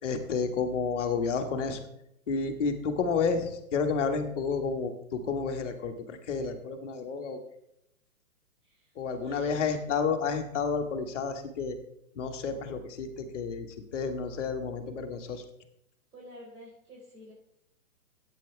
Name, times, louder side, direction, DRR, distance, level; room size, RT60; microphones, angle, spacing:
voice 1, 0.0-1.8 2.3-7.4 9.0-11.8 12.1-13.7 13.9-15.4, left 5 dB, 10° left, -9 dB, 0.4 m, -30 dB
voice 2, 8.6-9.6 16.1-17.3, right 1 dB, 90° right, -5 dB, 4.7 m, -49 dB
16.0 x 8.2 x 3.5 m, 0.80 s
hypercardioid pair, 160°, 44 cm